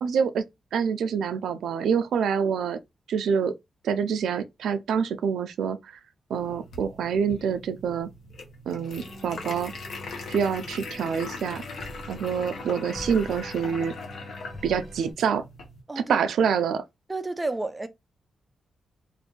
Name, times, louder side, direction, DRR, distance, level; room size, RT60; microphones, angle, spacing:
voice 1, 0.0-0.4 0.7-2.8 3.1-3.5 3.8-5.8 6.3-8.1 8.7-9.7 10.3-11.6 12.1-13.9 14.6-15.4 16.0-16.8, right 7 dB, 80° right, 0.4 m, -26 dB
sound 1, 6.3-15.8, left 3 dB, 65° left, 0.9 m, -41 dB
sound 2, 8.9-15.1, left 1 dB, 15° left, 1.3 m, -42 dB
voice 2, 15.9-16.6 17.1-17.9, right 2 dB, 10° right, 0.4 m, -32 dB
2.6 x 2.5 x 3.7 m
wide cardioid pair, 175°, 0 cm